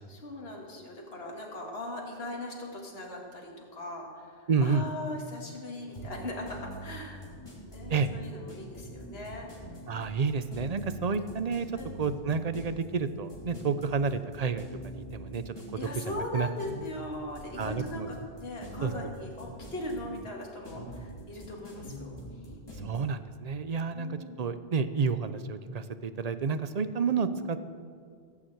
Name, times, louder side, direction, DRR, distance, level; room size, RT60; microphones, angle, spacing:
voice 1, 0.0-7.2 7.7-9.7 11.8-11.9 15.8-22.5 23.9-24.4, left 1 dB, 65° left, -1 dB, 2.2 m, -39 dB
voice 2, 4.5-4.8 7.9-8.1 9.9-11.7 12.0-15.5 16.0-16.5 17.6-18.1 18.8-18.9 22.8-27.7, right 5 dB, 45° right, 11 dB, 0.7 m, -30 dB
sound 1, 5.9-23.0, right 1 dB, 20° left, 3.1 m, -44 dB
16.0 x 7.3 x 7.9 m, 2.2 s
omnidirectional pair, 1.1 m